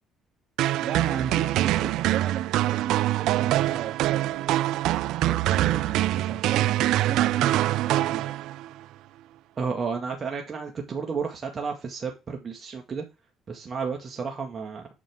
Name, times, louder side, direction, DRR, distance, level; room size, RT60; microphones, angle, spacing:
sound 1, 0.6-8.7, right 14 dB, 75° right, 0.4 m, -24 dB
voice 1, 0.8-4.6 5.2-8.3, right 8 dB, 60° right, 3 dB, 2.5 m, -35 dB
voice 2, 9.6-13.0 13.5-14.9, right 5 dB, 40° right, 2 dB, 1.8 m, -32 dB
9.1 x 6.4 x 3.6 m, 0.28 s
supercardioid pair, 70°, 0 cm